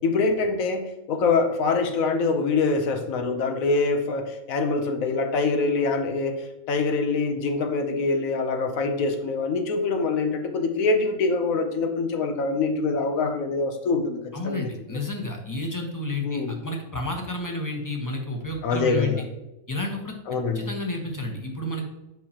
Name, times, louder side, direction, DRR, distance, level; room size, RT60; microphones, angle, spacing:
voice 1, 0.0-14.7 16.2-16.6 18.6-19.2 20.3-20.7, left 3 dB, 85° left, 5 dB, 1.2 m, -24 dB
voice 2, 14.3-19.1 19.7-20.1 20.5-21.8, left 2 dB, 15° left, 2 dB, 0.9 m, -31 dB
7.6 x 5.6 x 2.9 m, 0.97 s
omnidirectional pair, 1.4 m